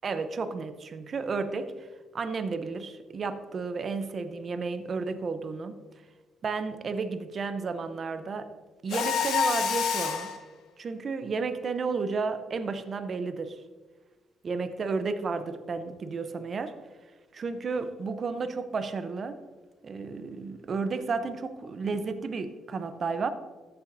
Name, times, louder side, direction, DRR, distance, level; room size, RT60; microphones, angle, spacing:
voice 1, 0.0-1.9 2.1-5.8 6.4-8.5 8.8-10.3 10.8-13.6 14.4-16.8 17.3-19.4 19.8-23.3, right 4 dB, 45° right, 0.7 m, -32 dB
Mechanisms, 8.9-10.4, left 6 dB, 80° left, 0.9 m, -27 dB
13.5 x 6.9 x 2.7 m
cardioid pair, 90°, 0 cm